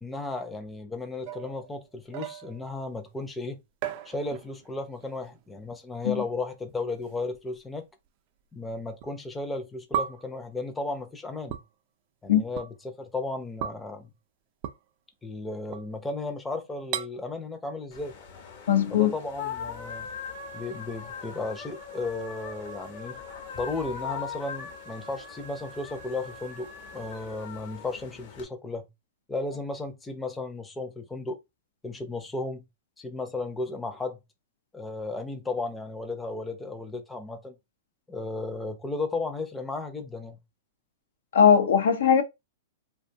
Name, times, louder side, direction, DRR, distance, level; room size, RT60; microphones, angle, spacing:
voice 1, 0.0-3.6 4.0-7.9 8.5-11.6 12.2-14.1 15.2-18.1 18.9-20.1 20.5-23.2 23.5-28.9 29.3-31.4 31.8-32.6 33.0-34.2 34.7-37.6 38.1-40.4, left 3 dB, 10° left, 0.5 m, -34 dB
sound 1, 1.3-2.8 3.8-4.7 5.0-5.4 6.4-6.5 7.3-7.4 9.0-9.1 9.9-10.4 11.5-11.7 12.6-12.7 13.6-13.9 14.6-14.8 15.7-16.2 16.9-17.1, right 10 dB, 50° right, 0.3 m, -35 dB
sound 2, 17.9-28.4, left 6 dB, 55° left, 0.8 m, -40 dB
voice 2, 18.7-19.1 41.3-42.2, left 8 dB, 85° left, 0.5 m, -20 dB
2.5 x 2.2 x 2.6 m
hypercardioid pair, 130°, 0 cm